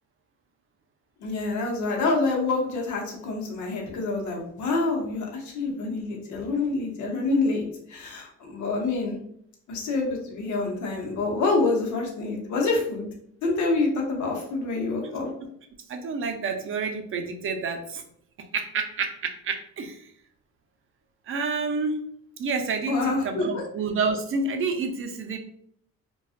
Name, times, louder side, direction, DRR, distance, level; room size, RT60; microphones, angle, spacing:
voice 1, 1.2-9.2 9.7-13.1 13.4-15.3 22.9-23.6, left 3 dB, 70° left, 0 dB, 0.8 m, -27 dB
voice 2, 15.9-18.0 18.5-20.0 21.3-22.0 22.4-25.4, right 4 dB, 45° right, 5 dB, 0.5 m, -29 dB
2.4 x 2.3 x 2.4 m, 0.67 s
cardioid pair, 90°, 30 cm